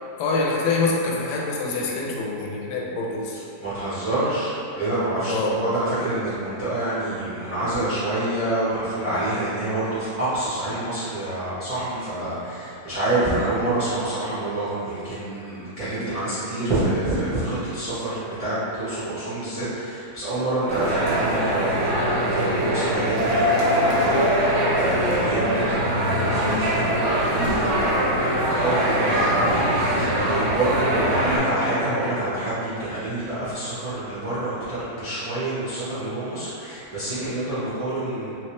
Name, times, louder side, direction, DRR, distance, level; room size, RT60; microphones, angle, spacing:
voice 1, 0.2-3.4 5.3-5.5, left 3 dB, 80° left, -3 dB, 1.1 m, -25 dB
voice 2, 3.6-38.3, right 1 dB, 50° right, -13 dB, 0.4 m, -27 dB
sound 1, 20.7-31.4, equal, 65° right, 0.8 m, -22 dB
3.0 x 3.0 x 2.9 m, 2.5 s
omnidirectional pair, 1.8 m